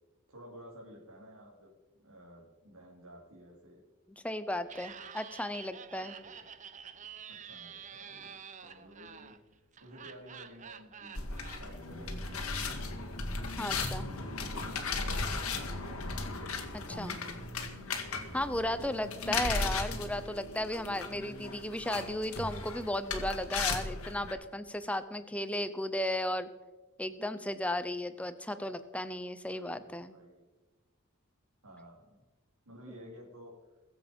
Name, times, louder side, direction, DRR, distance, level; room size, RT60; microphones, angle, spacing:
voice 1, 0.3-1.7 2.0-3.9 6.2-6.5 7.3-8.3 8.6-11.2 11.5-13.2 14.2-16.3 18.3-19.3 29.5-30.4 31.6-32.2 32.6-33.5, equal, 85° right, -4 dB, 3.3 m, -53 dB
voice 2, 4.2-6.2 13.6-14.1 16.7-17.2 18.0-26.5 27.0-30.1, left 1 dB, 5° left, 12 dB, 0.7 m, -35 dB
Laughter, 4.6-11.6, right 7 dB, 35° right, 0.7 m, -48 dB
sound 1, 11.2-24.3, left 4 dB, 90° left, 1.9 m, -36 dB
22.0 x 7.6 x 5.3 m, 1.2 s
head